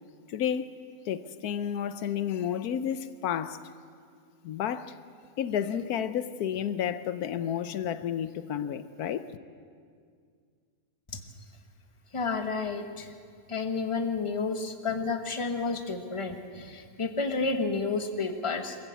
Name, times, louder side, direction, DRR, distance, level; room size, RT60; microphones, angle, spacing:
voice 1, 0.3-0.7 1.1-3.6 4.4-5.0 5.4-9.3, left 9 dB, 90° left, 1.3 m, -31 dB
voice 2, 12.1-13.1 13.5-18.8, left 4 dB, 20° left, 1.2 m, -31 dB
23.0 x 15.0 x 8.4 m
omnidirectional pair, 1.6 m